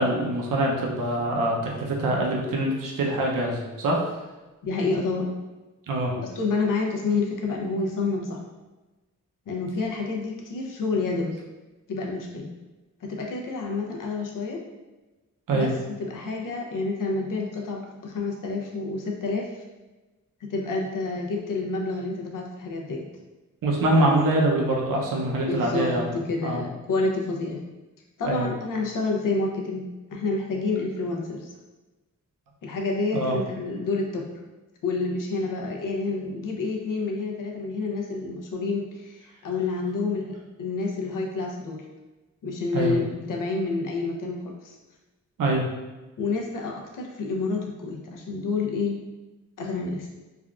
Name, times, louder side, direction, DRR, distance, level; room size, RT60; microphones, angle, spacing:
voice 1, 0.0-4.0 5.9-6.1 15.5-15.7 23.6-26.1 26.4-26.6 28.2-28.5 33.1-33.4 42.7-42.9 45.4-45.7, right 1 dB, 90° right, -1 dB, 0.6 m, -24 dB
voice 2, 4.6-5.3 6.2-8.4 9.5-11.4 11.9-12.5 13.0-14.6 15.5-15.7 16.0-19.5 20.5-23.1 24.0-24.1 25.5-27.6 28.2-31.5 32.6-34.2 34.8-41.8 42.4-44.8 46.2-49.0 49.6-50.1, left 3 dB, 85° left, 0 dB, 0.6 m, -29 dB
3.4 x 2.3 x 2.3 m, 1.2 s
wide cardioid pair, 120°, 31 cm